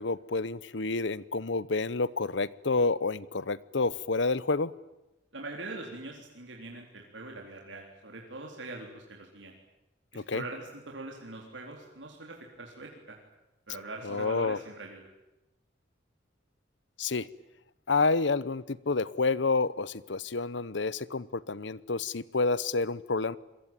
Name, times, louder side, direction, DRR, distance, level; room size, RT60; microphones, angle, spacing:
voice 1, 0.0-4.7 10.1-10.4 14.0-14.6 17.0-17.3 17.9-23.4, left 3 dB, 75° left, 19 dB, 0.9 m, -29 dB
voice 2, 5.3-9.5 10.1-13.2 13.7-15.1, right 2 dB, 85° right, 0 dB, 3.9 m, -43 dB
27.5 x 22.5 x 9.0 m, 0.95 s
head